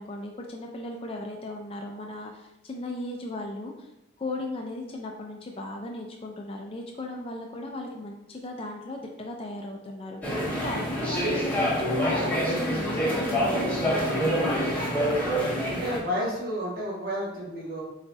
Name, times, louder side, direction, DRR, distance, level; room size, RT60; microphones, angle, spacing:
voice 1, 0.0-3.9 4.2-14.5, left 2 dB, 25° left, 1 dB, 0.3 m, -37 dB
sound 1, 10.2-16.0, equal, 5° left, 0.8 m, -26 dB
voice 2, 15.6-17.8, equal, 45° right, -4 dB, 1.2 m, -31 dB
4.0 x 4.0 x 2.3 m, 0.96 s
head